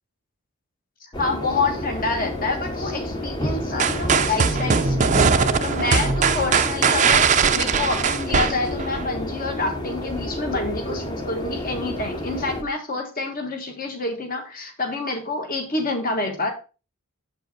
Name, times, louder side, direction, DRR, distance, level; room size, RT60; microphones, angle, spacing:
voice 1, 1.0-16.5, left 3 dB, 40° left, 4 dB, 1.5 m, -27 dB
sound 1, 1.1-12.6, left 1 dB, 20° left, 1.0 m, -30 dB
sound 2, 3.8-9.1, right 6 dB, 35° right, 0.5 m, -20 dB
7.4 x 5.3 x 4.2 m, 0.32 s
head